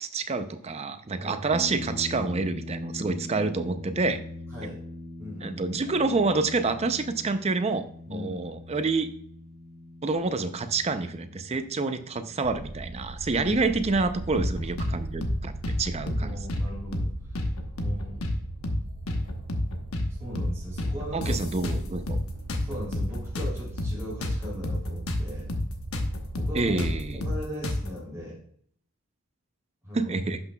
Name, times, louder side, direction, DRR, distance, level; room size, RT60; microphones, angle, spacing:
voice 1, 0.0-4.2 5.4-7.8 8.1-9.1 10.0-15.5 15.8-16.4 21.1-22.2 26.5-27.2 29.9-30.4, right 3 dB, 30° right, 10 dB, 0.5 m, -28 dB
sound 1, 1.5-14.6, left 2 dB, 20° left, 2.1 m, -42 dB
voice 2, 5.2-5.6 8.1-8.6 13.4-13.6 16.2-17.4 17.8-18.3 20.1-21.7 22.6-25.5 26.3-28.4 29.8-30.1, equal, 15° right, -8 dB, 3.1 m, -39 dB
sound 2, 12.4-27.4, right 2 dB, 80° right, 0.6 m, -39 dB
sound 3, 14.4-14.9 15.2-15.4 15.6-16.7 16.9-17.1 17.4-18.4 18.6-18.8 19.1-20.1 20.4-20.5 20.8-22.2 22.5-25.2 25.5-25.7 25.9-28.0, left 1 dB, 75° left, 1.0 m, -29 dB
11.5 x 5.9 x 2.3 m, 0.63 s
head